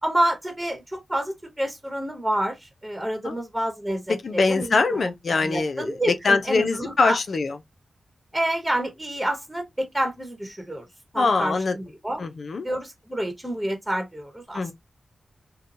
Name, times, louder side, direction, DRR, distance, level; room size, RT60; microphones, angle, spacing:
voice 1, 0.0-7.2 8.3-10.8 11.1-12.2 12.6-14.6, right 1 dB, 10° right, 1.2 m, -28 dB
voice 2, 4.2-7.6 11.2-11.8 12.2-12.7 14.5-14.7, left 4 dB, 70° left, 0.5 m, -23 dB
2.7 x 2.3 x 2.6 m
cardioid pair, 50°, 0 cm